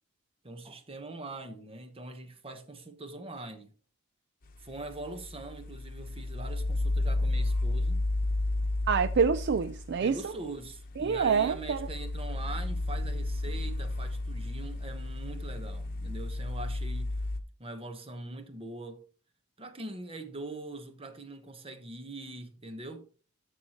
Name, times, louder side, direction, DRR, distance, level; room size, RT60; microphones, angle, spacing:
voice 1, 0.4-3.7 4.6-8.0 10.0-17.1 17.6-19.0 19.6-23.0, right 2 dB, 30° right, 1.1 m, -42 dB
sound 1, 4.5-17.4, left 2 dB, 45° left, 1.0 m, -33 dB
voice 2, 8.9-10.2 11.0-11.8, right 6 dB, 55° right, 0.4 m, -26 dB
13.5 x 6.5 x 3.0 m
head